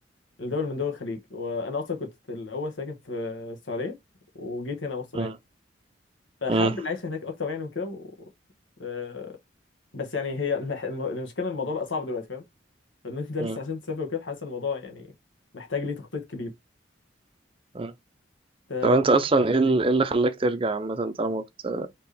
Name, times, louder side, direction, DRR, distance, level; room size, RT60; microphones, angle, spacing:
voice 1, 0.4-4.0 4.3-5.3 6.4-8.1 8.8-9.4 9.9-12.4 13.0-15.1 15.5-16.5 18.7-19.1 19.4-19.8, left 4 dB, 85° left, 1.3 m, -32 dB
voice 2, 18.8-21.9, right 3 dB, 30° right, 0.5 m, -23 dB
4.4 x 3.0 x 3.3 m
head